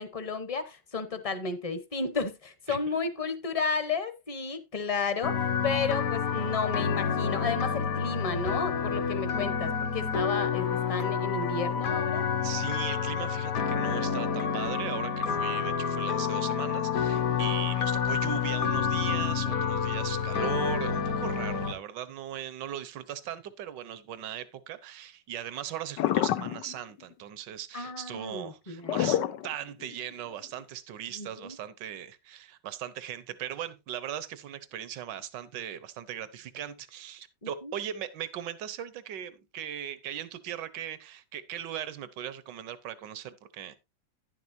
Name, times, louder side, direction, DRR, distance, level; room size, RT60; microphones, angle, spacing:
voice 1, 0.0-5.4 5.6-12.3 27.7-29.1 31.1-31.6 37.4-37.7, left 4 dB, 25° left, 0.8 m, -33 dB
sound 1, 5.2-21.7, left 7 dB, 55° left, 1.3 m, -29 dB
voice 2, 12.4-43.8, right 10 dB, 75° right, 1.5 m, -39 dB
sound 2, 26.0-26.8 28.8-29.9 30.6-30.7, left 12 dB, 75° left, 1.3 m, -27 dB
11.0 x 10.5 x 2.6 m
omnidirectional pair, 1.9 m